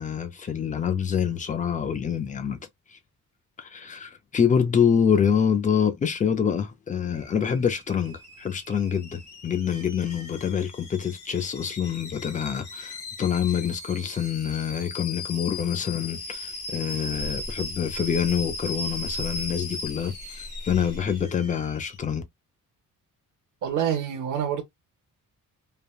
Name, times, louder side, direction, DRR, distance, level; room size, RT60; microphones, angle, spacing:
voice 1, 0.0-2.6 2.9-3.0 3.6-22.2, left 7 dB, 25° left, 0.4 m, -26 dB
Alarm / Boiling, 7.1-22.0, left 2 dB, 50° left, 1.5 m, -38 dB
sound 1, 16.1-21.2, equal, 25° right, 0.6 m, -42 dB
voice 2, 23.6-24.6, right 9 dB, 65° right, 0.7 m, -26 dB
3.3 x 2.1 x 2.3 m
wide cardioid pair, 180°, 33 cm